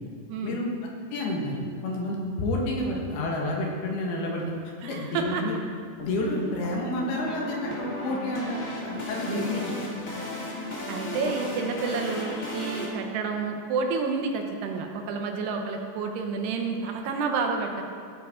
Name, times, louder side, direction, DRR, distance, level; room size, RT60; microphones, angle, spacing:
voice 1, 1.1-1.6 1.8-4.4 4.8-5.5 6.0-9.7, left 1 dB, 70° left, -2 dB, 3.2 m, -30 dB
voice 2, 4.8-5.4 9.3-9.7 10.9-17.8, right 4 dB, 75° right, 3 dB, 2.8 m, -30 dB
sound 1, 6.0-12.8, left 1 dB, 40° left, 1.1 m, -35 dB
16.0 x 8.9 x 3.7 m, 2.2 s
omnidirectional pair, 5.0 m